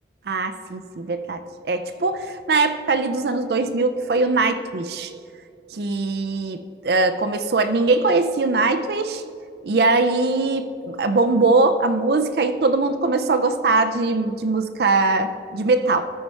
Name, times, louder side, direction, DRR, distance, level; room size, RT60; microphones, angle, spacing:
voice 1, 0.3-5.1 5.7-9.2 9.6-16.1, right 3 dB, 60° right, 9 dB, 0.5 m, -21 dB
13.0 x 4.5 x 5.5 m, 2.4 s
head